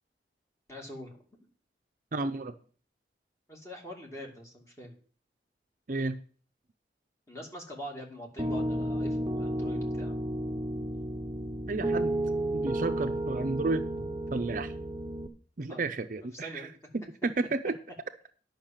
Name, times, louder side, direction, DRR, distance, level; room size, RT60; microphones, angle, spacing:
voice 1, 0.7-1.2 3.5-5.0 7.3-10.2 14.0-14.1 15.7-15.9 16.3-16.8, equal, 15° left, 0 dB, 2.4 m, -43 dB
voice 2, 2.1-2.5 5.9-6.2 11.7-12.1 12.5-13.8 14.3-14.7 15.6-16.7 16.9-17.7, right 3 dB, 50° right, 8 dB, 0.6 m, -32 dB
Piano, 8.4-15.3, right 1 dB, 20° right, 0.8 m, -32 dB
10.5 x 5.8 x 7.3 m, 0.41 s
head